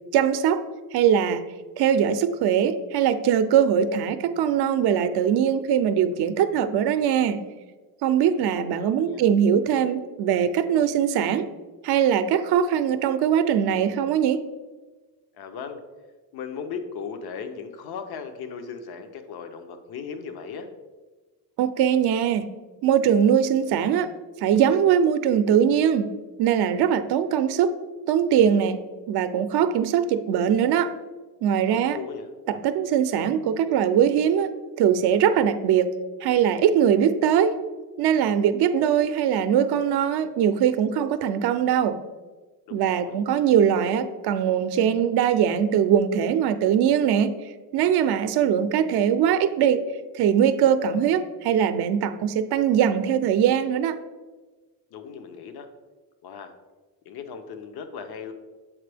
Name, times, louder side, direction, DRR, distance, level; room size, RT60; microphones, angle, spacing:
voice 1, 0.1-0.6 0.9-1.4 1.8-7.4 8.0-11.5 11.8-14.4 21.6-22.5 22.8-24.1 24.4-26.1 26.4-27.7 28.1-28.8 29.1-30.9 31.4-32.0 32.5-34.5 34.8-35.9 36.2-37.6 38.0-42.0 42.7-47.3 47.7-49.8 50.1-54.0, right 8 dB, 70° right, 11 dB, 0.5 m, -21 dB
voice 2, 8.8-9.2 15.3-15.8 16.3-20.7 31.7-32.3 42.7-43.2 54.9-55.7 56.2-56.5 57.0-58.3, left 6 dB, 65° left, 8 dB, 0.7 m, -37 dB
7.3 x 4.4 x 3.3 m, 1.3 s
cardioid pair, 125°, 40 cm